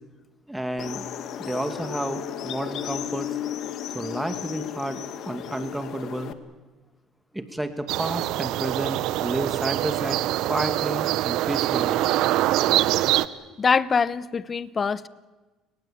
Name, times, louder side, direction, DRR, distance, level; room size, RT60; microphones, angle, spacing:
voice 1, 0.5-1.0 1.4-3.3 3.9-6.3 7.3-10.2 10.5-12.1, right 1 dB, 5° right, 8 dB, 2.3 m, -31 dB
sound 1, 0.8-6.3, left 10 dB, 65° left, 1.8 m, -34 dB
sound 2, 7.9-13.3, right 15 dB, 75° right, 0.9 m, -24 dB
voice 2, 13.6-15.1, left 5 dB, 35° left, 16 dB, 1.1 m, -23 dB
29.5 x 18.5 x 8.7 m, 1.2 s
supercardioid pair, 80°, 0 cm